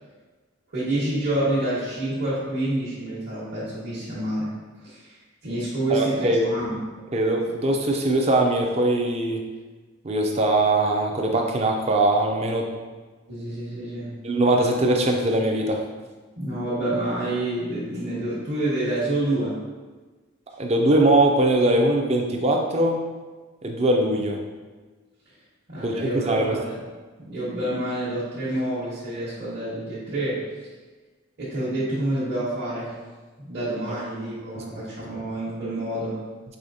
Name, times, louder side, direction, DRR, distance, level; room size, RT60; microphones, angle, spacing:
voice 1, 0.7-4.5 4.8-5.2 5.4-6.8 13.3-14.1 16.4-19.6 25.7-26.8 27.2-30.4 31.4-32.9 33.4-36.2, right 1 dB, 50° right, -11 dB, 1.1 m, -28 dB
voice 2, 5.9-6.4 7.1-9.4 10.0-12.7 14.2-15.8 20.6-23.0 23.6-24.4 25.8-26.6 34.6-34.8, right 1 dB, 30° right, 2 dB, 0.4 m, -21 dB
4.9 x 3.2 x 2.6 m, 1.3 s
head